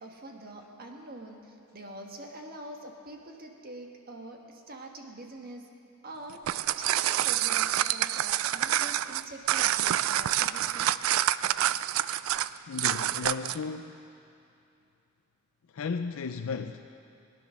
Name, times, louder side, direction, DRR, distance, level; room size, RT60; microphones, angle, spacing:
voice 1, 0.0-5.6 6.0-10.9, right 2 dB, 50° right, 2 dB, 1.5 m, -45 dB
sound 1, 6.3-13.6, right 12 dB, 80° right, 0.3 m, -27 dB
voice 2, 12.7-14.0 15.7-16.9, left 5 dB, 90° left, 7 dB, 0.4 m, -34 dB
17.5 x 10.0 x 6.3 m, 2.6 s
head